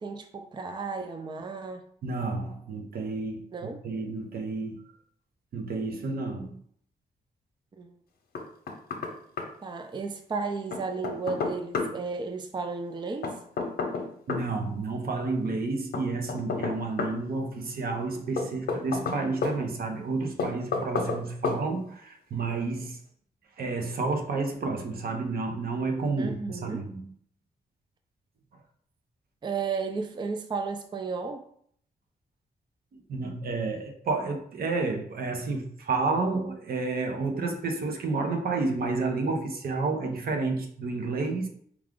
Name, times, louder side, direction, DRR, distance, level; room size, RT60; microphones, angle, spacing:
voice 1, 0.0-1.8 3.5-3.8 7.8-7.9 9.6-13.3 26.2-26.9 29.4-31.4, right 4 dB, 30° right, 0.4 m, -33 dB
voice 2, 2.0-4.8 5.5-6.6 14.3-23.0 23.6-27.1 32.9-41.5, right 3 dB, 75° right, 0.8 m, -30 dB
Knock, 8.4-9.1 9.4-9.5 10.7-11.9 13.2-14.5 15.9-17.2 18.4-19.6 20.4-21.2 21.4-21.6, left 4 dB, 90° left, 0.7 m, -30 dB
4.8 x 2.3 x 3.7 m
cardioid pair, 95°, 16 cm